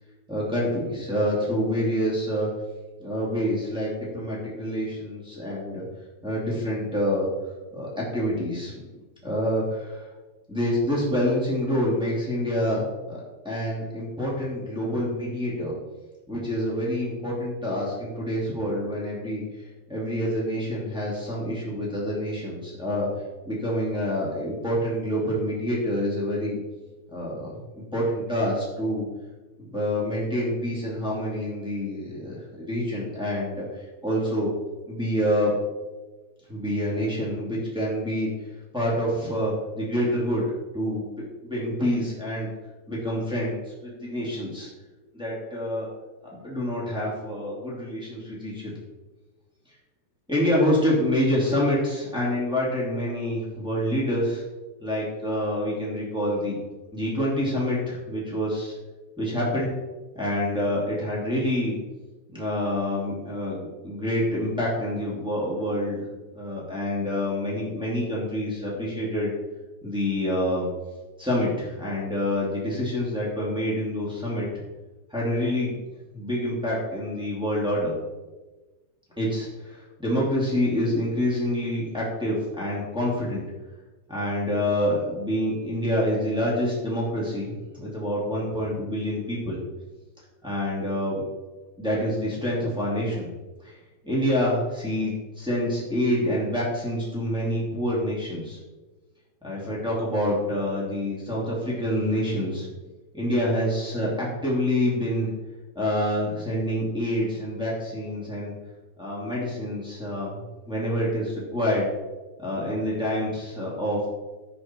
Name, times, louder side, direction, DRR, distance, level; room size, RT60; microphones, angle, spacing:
voice 1, 0.3-2.5 3.0-5.8 6.2-7.3 7.7-8.8 9.2-10.0 10.5-15.7 16.3-19.4 19.9-23.1 23.4-26.6 27.1-27.5 27.9-29.1 29.6-33.6 34.0-34.5 34.9-35.5 36.5-38.3 38.7-40.5 40.7-42.5 42.9-44.7 45.1-45.9 46.3-48.7 50.3-54.4 54.8-56.6 56.9-58.7 59.2-59.7 60.1-61.8 62.3-66.0 66.3-69.3 69.8-70.7 71.2-74.5 75.1-75.7 76.1-77.9 79.2-83.4 84.1-89.6 90.4-91.2 91.8-93.3 93.6-93.8 94.0-98.6 99.4-102.7 103.1-105.3 105.7-108.5 109.0-110.4 110.6-111.9 112.4-114.1, equal, ahead, -7 dB, 1.2 m, -27 dB
11.5 x 6.3 x 4.6 m, 1.2 s
omnidirectional pair, 5.9 m